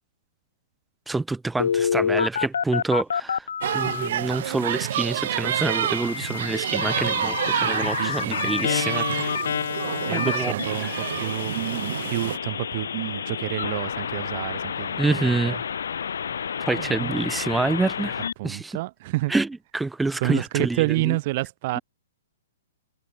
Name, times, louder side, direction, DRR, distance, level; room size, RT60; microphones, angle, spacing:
voice 1, 1.1-9.4 10.1-10.5 10.8-11.0 15.0-15.6 16.7-18.8 19.3-19.5 19.7-21.2, right 3 dB, 5° right, 3.0 m, -27 dB
Telephone, 1.6-4.1 5.5-18.3, left 7 dB, 85° left, 2.3 m, -29 dB
sound 1, 3.6-12.4, right 11 dB, 55° right, 1.5 m, -29 dB
voice 2, 8.0-8.5 10.1-15.6 16.7-17.1 18.4-19.3 20.2-21.8, right 19 dB, 40° right, 2.5 m, -29 dB
hypercardioid pair, 160°, 0 cm